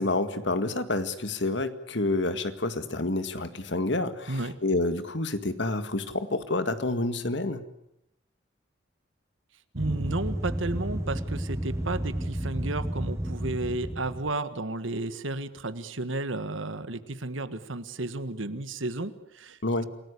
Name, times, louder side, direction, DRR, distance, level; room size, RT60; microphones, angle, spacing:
voice 1, 0.0-7.6 19.6-19.9, left 2 dB, 65° left, 10 dB, 1.9 m, -28 dB
voice 2, 9.7-19.8, right 2 dB, 85° right, 13 dB, 1.6 m, -33 dB
sound 1, 9.8-14.4, right 1 dB, 15° right, 1.1 m, -32 dB
28.5 x 18.5 x 8.4 m, 0.81 s
head